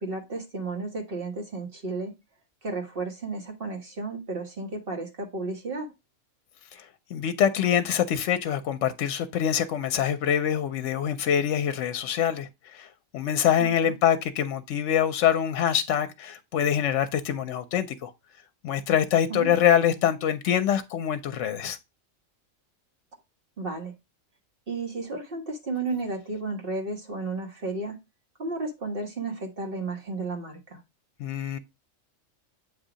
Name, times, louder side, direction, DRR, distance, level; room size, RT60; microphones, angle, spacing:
voice 1, 0.0-2.1 2.6-5.9 13.6-13.9 19.3-19.6 23.6-23.9 24.7-27.9 28.4-30.8, right 3 dB, 45° right, 1.5 m, -33 dB
voice 2, 6.7-12.9 13.1-18.1 18.6-21.8 31.2-31.6, left 9 dB, 75° left, 0.9 m, -25 dB
7.9 x 2.7 x 4.9 m
omnidirectional pair, 1.3 m